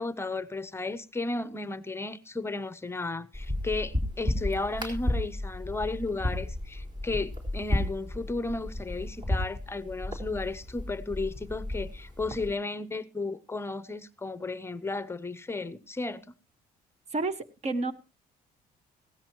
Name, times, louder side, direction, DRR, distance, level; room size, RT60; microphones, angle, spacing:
voice 1, 0.0-16.2, left 3 dB, 15° left, 0.7 m, -34 dB
sound 1, 3.3-12.5, left 1 dB, 25° right, 4.2 m, -33 dB
voice 2, 17.1-17.9, right 3 dB, 40° right, 1.3 m, -30 dB
16.5 x 13.5 x 3.0 m
cardioid pair, 110°, 17 cm